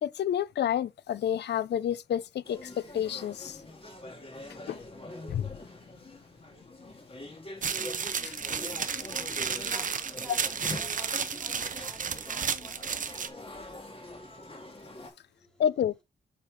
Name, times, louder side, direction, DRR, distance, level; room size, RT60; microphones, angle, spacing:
voice 1, 0.0-3.6 4.7-4.8 5.3-5.5 8.2-8.3 15.6-16.0, left 9 dB, 70° left, 0.4 m, -29 dB
sound 1, 2.4-15.1, left 2 dB, 30° left, 2.0 m, -44 dB
sound 2, 7.6-13.3, right 6 dB, 45° right, 0.7 m, -32 dB
voice 2, 8.9-13.8 14.9-15.6, right 1 dB, 5° left, 2.7 m, -53 dB
7.3 x 3.3 x 4.9 m
cardioid pair, 80°, 18 cm